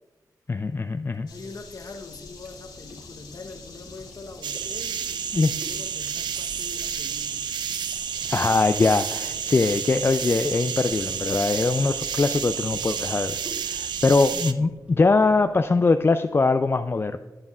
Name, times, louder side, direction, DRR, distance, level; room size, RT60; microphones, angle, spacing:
voice 1, 0.5-1.3 5.3-5.5 8.3-13.4 13.6-17.2, left 3 dB, 30° left, 9 dB, 0.4 m, -22 dB
sound 1, 1.1-16.3, equal, 25° right, 2.9 m, -49 dB
sound 2, 1.3-14.3, left 3 dB, 85° left, 2.1 m, -48 dB
voice 2, 1.3-7.6 9.2-9.7, left 3 dB, 50° left, 5 dB, 1.0 m, -43 dB
sound 3, 4.4-14.5, right 8 dB, 75° right, 0.4 m, -30 dB
10.5 x 8.8 x 2.4 m, 1.2 s
cardioid pair, 50°, 8 cm